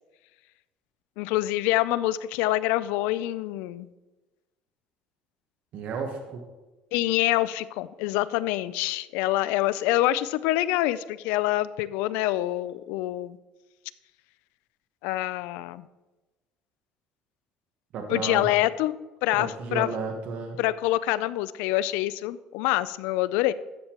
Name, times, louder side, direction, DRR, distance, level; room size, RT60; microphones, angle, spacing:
voice 1, 1.2-3.9 6.9-13.4 15.0-15.9 18.1-18.9 19.2-19.9 20.6-23.5, left 15 dB, 85° left, 16 dB, 0.3 m, -26 dB
voice 2, 5.7-6.4 17.9-18.5 19.3-20.6, right 4 dB, 60° right, 3 dB, 1.1 m, -33 dB
13.0 x 8.0 x 3.0 m, 1.1 s
cardioid pair, 115°, 3 cm